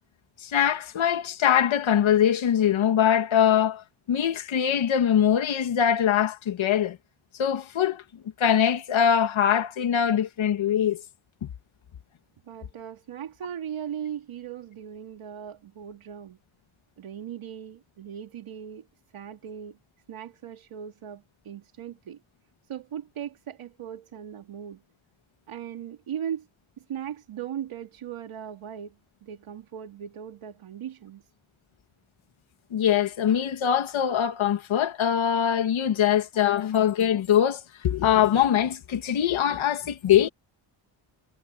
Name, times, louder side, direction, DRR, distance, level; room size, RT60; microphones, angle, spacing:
voice 1, 0.4-7.0 7.4-8.0 8.4-11.0 32.7-40.3, left 9 dB, 75° left, 2.1 m, -23 dB
voice 2, 12.5-16.4 17.0-18.9 19.1-19.8 20.1-22.2 22.7-24.8 25.5-26.5 26.8-31.2, right 9 dB, 90° right, 3.0 m, -38 dB
wide cardioid pair, 180°, 48 cm